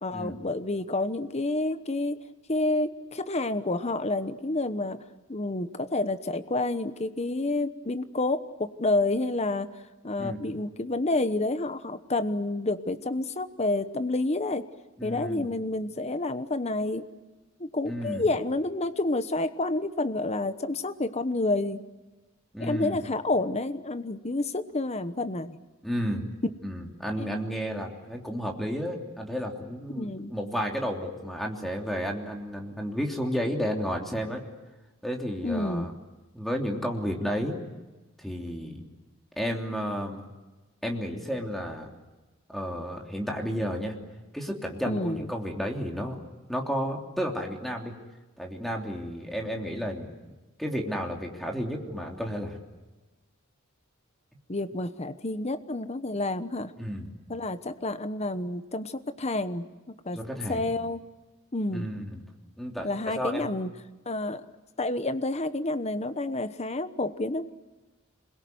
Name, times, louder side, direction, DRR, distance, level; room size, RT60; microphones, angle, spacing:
voice 1, 0.0-2.2 2.5-5.0 5.3-9.7 10.0-14.6 15.0-17.1 17.6-21.8 22.6-25.6 26.4-26.5 27.2-27.3 29.9-30.3 35.4-35.9 44.9-45.3 54.5-56.7 57.3-59.7 60.0-60.2 60.5-61.0 61.5-61.9 62.8-63.7 64.1-64.5 64.8-67.5, left 2 dB, 30° left, 11 dB, 1.0 m, -29 dB
voice 2, 15.0-15.5 17.8-18.3 22.5-23.0 25.8-26.3 26.6-34.4 35.0-35.9 36.3-37.6 38.2-38.8 39.4-40.3 40.8-41.9 42.5-43.9 44.3-46.2 46.5-47.9 48.4-50.1 50.6-52.6 56.8-57.1 60.1-60.6 61.7-62.2 62.6-62.9 63.1-63.5, equal, ahead, 1 dB, 3.1 m, -32 dB
27.0 x 22.0 x 9.4 m, 1.2 s
head